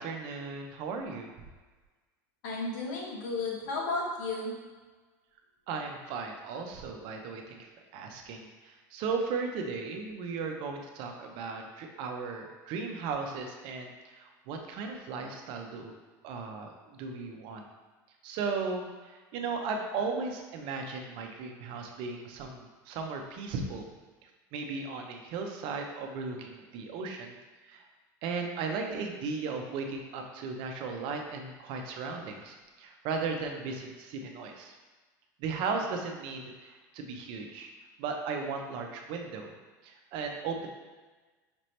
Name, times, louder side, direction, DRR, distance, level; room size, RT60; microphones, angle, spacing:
voice 1, 0.0-1.3 5.7-15.9 16.2-17.6 18.2-23.9 24.2-27.9 28.2-34.7 35.4-37.7 38.0-39.5 39.8-40.7, right 4 dB, 60° right, 3 dB, 0.6 m, -36 dB
voice 2, 2.4-4.5, left 3 dB, 80° left, -2 dB, 1.2 m, -33 dB
5.1 x 2.8 x 3.2 m, 1.3 s
supercardioid pair, 125°, 10 cm